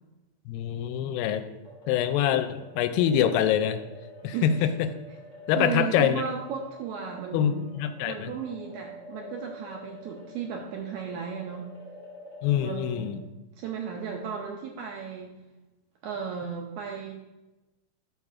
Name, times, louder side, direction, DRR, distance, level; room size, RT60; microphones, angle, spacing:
voice 1, 0.5-1.5 1.9-3.8 4.2-4.9 5.5-6.2 7.3-8.3 12.4-13.2, left 9 dB, 90° left, 10 dB, 2.3 m, -25 dB
sound 1, 1.6-13.1, left 1 dB, 30° left, 1.7 m, -48 dB
voice 2, 4.3-4.7 5.5-7.7 8.0-11.7 12.5-13.1 13.6-15.3 16.0-17.1, right 6 dB, 80° right, 1 dB, 1.7 m, -35 dB
12.5 x 4.6 x 2.4 m, 1.0 s
omnidirectional pair, 4.0 m